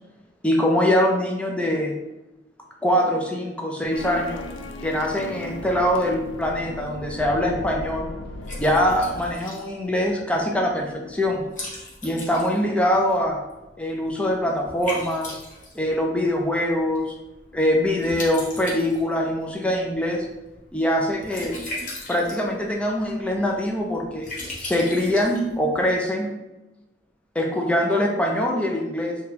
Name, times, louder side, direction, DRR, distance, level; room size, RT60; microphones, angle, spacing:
voice 1, 0.4-1.9 2.8-4.5 4.8-8.1 8.6-11.4 12.0-13.4 13.8-15.4 15.7-17.1 17.5-20.3 20.7-21.6 22.1-24.3 24.6-26.3 27.3-29.2, left 1 dB, 5° left, 0 dB, 0.4 m, -23 dB
sound 1, 3.9-9.3, left 2 dB, 80° left, 0.3 m, -36 dB
Liquid, 6.5-26.0, left 1 dB, 45° left, 0.8 m, -40 dB
3.3 x 2.3 x 3.0 m, 0.99 s
head